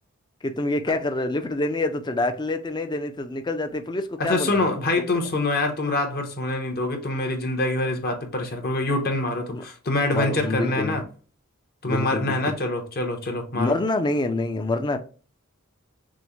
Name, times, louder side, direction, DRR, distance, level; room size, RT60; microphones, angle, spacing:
voice 1, 0.4-4.7 9.5-9.6 10.1-11.0 11.8-12.6 13.5-15.0, left 2 dB, 20° left, 0.4 m, -26 dB
voice 2, 4.2-11.0 11.8-13.8, left 2 dB, 45° left, 1.0 m, -25 dB
6.1 x 2.1 x 3.0 m
head